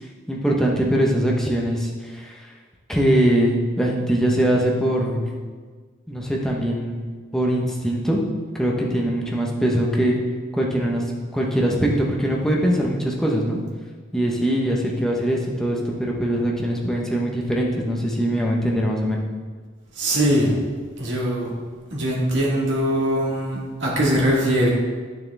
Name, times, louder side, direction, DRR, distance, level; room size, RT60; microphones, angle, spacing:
voice 1, 0.3-2.5 2.9-5.3 6.1-8.2 8.5-10.2 10.5-11.0 11.3-13.6 14.1-19.2, right 1 dB, ahead, -3 dB, 1.0 m, -22 dB
voice 2, 20.0-20.6 21.0-21.5 21.9-24.7, equal, 65° right, -4 dB, 2.0 m, -21 dB
9.7 x 7.3 x 3.5 m, 1.5 s
head